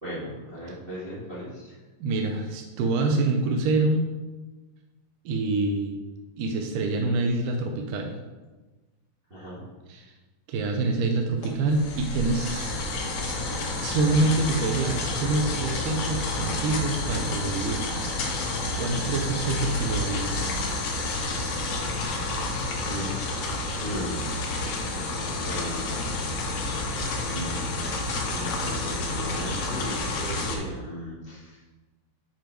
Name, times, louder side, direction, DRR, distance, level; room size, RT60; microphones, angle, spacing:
voice 1, 0.0-1.8 9.3-9.6 18.9-19.0 22.8-24.4 24.9-26.7 27.3-31.6, equal, 65° right, -9 dB, 0.5 m, -38 dB
voice 2, 2.0-4.1 5.3-5.9 6.4-8.2 9.9-10.1 10.5-12.7 13.8-17.9 18.8-20.5, right 3 dB, 90° right, 3 dB, 1.8 m, -26 dB
sound 1, 11.4-30.6, left 2 dB, 75° left, 1.6 m, -29 dB
7.1 x 5.2 x 4.5 m, 1.2 s
omnidirectional pair, 4.6 m